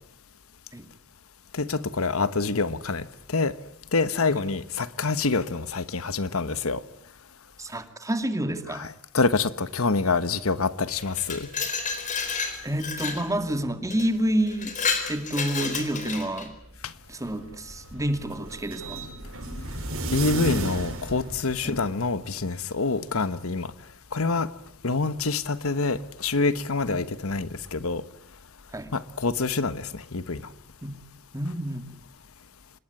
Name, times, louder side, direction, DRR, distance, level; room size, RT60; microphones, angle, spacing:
voice 1, 1.5-3.5 3.9-6.8 8.7-11.5 16.8-16.9 20.1-23.7 24.1-24.5 24.8-28.0 28.9-30.4, left 3 dB, 75° left, 1.2 m, -26 dB
voice 2, 7.6-8.9 12.6-14.7 15.1-16.5 17.1-19.0 21.6-21.8 28.7-28.9 30.8-31.0 31.3-31.9, right 1 dB, 15° right, 2.3 m, -28 dB
Glass, 11.0-13.3 13.9-14.1 14.5-16.5, left 5 dB, 35° left, 4.2 m, -30 dB
sound 1, 17.0-22.1, right 2 dB, 65° right, 6.2 m, -34 dB
27.0 x 21.0 x 9.7 m
head